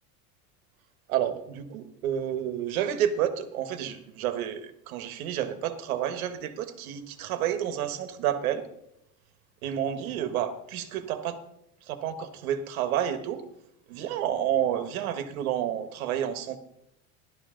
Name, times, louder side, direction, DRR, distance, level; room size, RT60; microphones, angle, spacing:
voice 1, 1.1-8.6 9.6-11.4 11.9-13.4 13.9-16.6, right 10 dB, 90° right, 10 dB, 1.4 m, -30 dB
13.0 x 12.0 x 3.8 m, 0.77 s
supercardioid pair, 155°, 42 cm